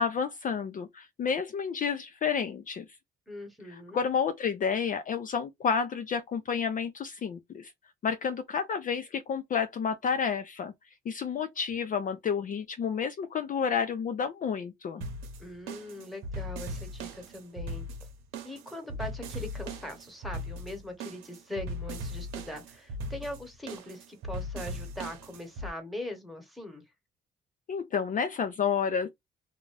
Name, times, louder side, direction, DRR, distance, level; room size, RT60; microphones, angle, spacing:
voice 1, 0.0-2.8 3.7-7.7 8.0-10.7 11.1-15.0 27.7-29.1, left 6 dB, 45° left, 0.4 m, -30 dB
voice 2, 3.3-4.0 15.4-17.9 18.4-26.8, left 1 dB, ahead, 1.2 m, -41 dB
sound 1, 15.0-25.7, equal, 90° right, 0.8 m, -39 dB
2.6 x 2.2 x 3.2 m
cardioid pair, 90°, 20 cm